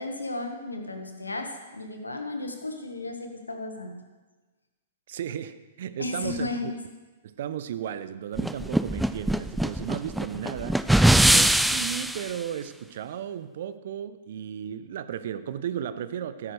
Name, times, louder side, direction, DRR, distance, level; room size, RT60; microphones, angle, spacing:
voice 1, 0.0-4.0 6.0-6.7, left 2 dB, 85° left, 4 dB, 1.7 m, -34 dB
voice 2, 5.1-6.7 7.2-10.8 11.3-16.5, right 9 dB, 55° right, 14 dB, 0.7 m, -35 dB
sound 1, 8.4-12.3, right 1 dB, ahead, 0.3 m, -22 dB
13.5 x 12.5 x 3.4 m, 1.3 s
figure-of-eight pair, 110°, 0 cm